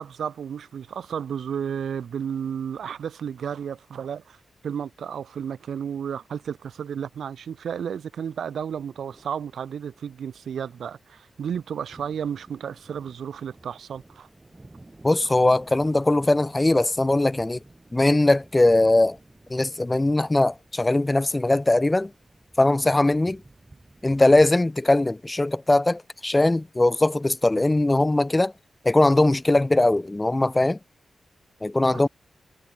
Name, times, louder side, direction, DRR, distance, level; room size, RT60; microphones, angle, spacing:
voice 1, 0.0-4.4 4.6-14.3 31.9-32.1, right 8 dB, 85° right, 1.6 m, -32 dB
sound 1, 6.4-24.5, right 2 dB, 20° right, 6.2 m, -53 dB
voice 2, 15.0-17.6 17.9-19.2 19.5-22.1 22.6-23.4 24.0-28.5 28.8-30.8 31.6-32.1, left 2 dB, 15° left, 0.5 m, -20 dB
wide cardioid pair, 105°, 0 cm